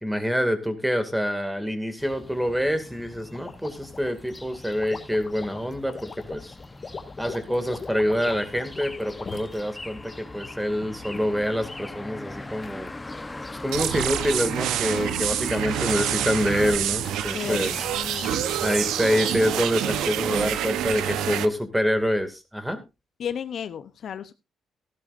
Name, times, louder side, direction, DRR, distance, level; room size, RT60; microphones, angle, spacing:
voice 1, 0.0-6.5 7.2-12.9 13.6-17.7 18.6-22.8, equal, 5° right, 9 dB, 2.2 m, -26 dB
sound 1, 2.0-21.3, left 2 dB, 15° left, 0.9 m, -41 dB
sound 2, 3.3-9.6 10.2-11.5 12.6-13.2 13.6-19.0, left 4 dB, 35° left, 2.1 m, -42 dB
sound 3, 13.7-21.5, right 11 dB, 85° right, 0.8 m, -27 dB
voice 2, 15.5-16.4 17.3-18.7 21.1-21.4 23.2-24.3, left 8 dB, 60° left, 12 dB, 0.7 m, -35 dB
15.0 x 12.0 x 2.5 m, 0.26 s
cardioid pair, 90°, 0 cm